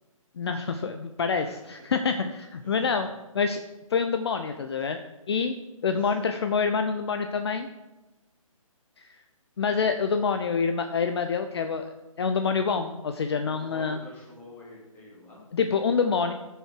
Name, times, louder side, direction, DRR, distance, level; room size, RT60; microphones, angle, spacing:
voice 1, 0.4-3.1 3.3-3.6 3.9-5.0 5.3-5.5 5.8-7.7 9.0-9.1 9.6-11.9 12.2-14.0 15.5-16.3, left 5 dB, 50° left, 7 dB, 0.7 m, -26 dB
voice 2, 1.3-1.7 2.6-2.9 4.8-4.9 6.0-6.3 13.5-15.5, left 2 dB, 10° left, -5 dB, 3.1 m, -47 dB
14.5 x 6.8 x 4.7 m, 1.1 s
figure-of-eight pair, 150°, 18 cm